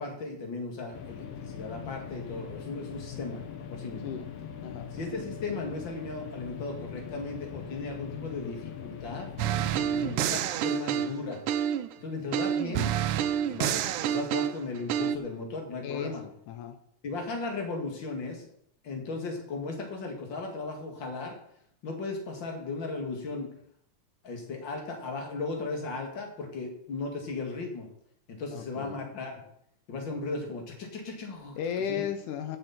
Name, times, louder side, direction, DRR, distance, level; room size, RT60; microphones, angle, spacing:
voice 1, 0.0-3.4 3.7-4.3 4.9-9.3 10.0-11.4 12.0-12.9 13.5-16.2 17.0-18.5 18.8-21.4 21.8-23.5 24.2-27.9 28.3-29.4 29.9-31.6 31.9-32.0, left 3 dB, 40° left, 2 dB, 2.7 m, -36 dB
sound 1, 0.9-10.2, left 7 dB, 65° left, 1.8 m, -41 dB
sound 2, 9.4-11.9 12.3-15.2, right 10 dB, 90° right, 2.1 m, -28 dB
voice 2, 9.8-10.2 15.8-16.8 28.5-29.0 31.6-32.6, left 8 dB, 80° left, 8 dB, 2.3 m, -35 dB
14.5 x 8.2 x 4.3 m, 0.71 s
omnidirectional pair, 3.5 m